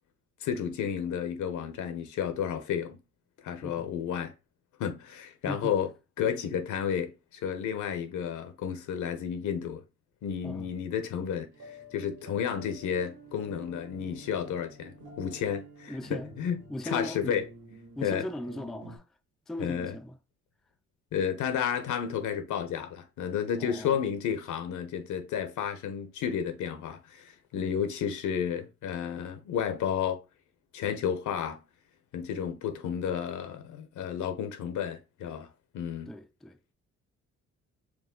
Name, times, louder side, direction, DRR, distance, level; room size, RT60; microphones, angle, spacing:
voice 1, 0.4-3.0 3.4-4.3 4.8-5.9 6.2-9.8 10.2-11.5 11.9-16.6 16.8-17.5 18.0-18.3 19.6-20.0 21.1-30.2 30.7-31.6 32.1-35.5 35.7-36.1, left 8 dB, 75° left, 0.9 m, -32 dB
sound 1, 11.5-19.0, equal, 75° right, 1.6 m, -49 dB
voice 2, 15.9-16.3 16.7-17.4 18.0-19.0 19.5-20.2 23.6-24.0 36.1-36.6, left 1 dB, ahead, 0.3 m, -38 dB
4.8 x 2.3 x 3.7 m
cardioid pair, 90°, 30 cm